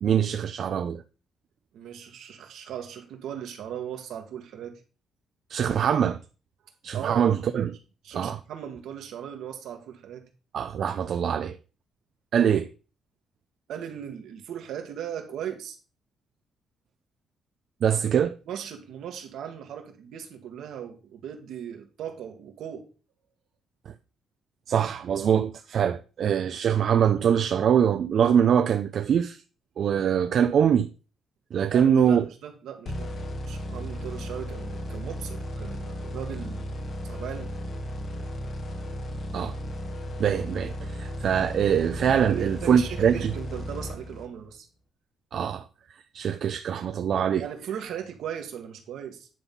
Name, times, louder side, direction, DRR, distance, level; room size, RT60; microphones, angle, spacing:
voice 1, 0.0-1.0 5.5-6.2 6.8-7.8 8.1-8.4 10.5-11.6 12.3-12.7 17.8-18.3 24.7-29.4 29.8-30.9 31.5-32.2 39.3-39.6 40.2-43.2 45.3-45.6 46.1-47.4, right 8 dB, 60° right, 0.5 m, -23 dB
voice 2, 1.7-4.8 6.9-7.2 8.0-10.3 13.7-15.8 18.5-22.9 31.6-33.1 33.5-36.7 37.0-37.5 42.3-44.7 47.4-49.3, right 9 dB, 80° right, 1.9 m, -38 dB
sound 1, 32.9-44.5, equal, 50° left, 1.4 m, -35 dB
10.0 x 4.0 x 5.6 m
cardioid pair, 90°, 0 cm